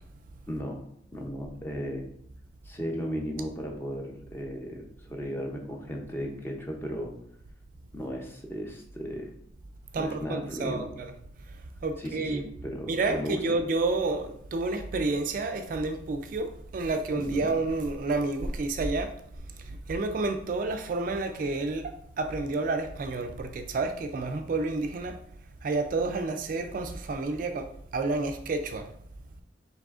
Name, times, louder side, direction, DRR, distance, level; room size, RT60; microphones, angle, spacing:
voice 1, 0.5-0.8 1.1-2.1 2.6-7.1 7.9-9.3 10.0-10.9 12.0-13.4 17.1-17.5, equal, 15° left, 0.6 m, -35 dB
voice 2, 9.9-11.1 11.5-12.4 12.9-19.1 19.6-25.2 25.6-28.9, right 3 dB, 45° right, 0.3 m, -30 dB
4.8 x 3.3 x 2.4 m
head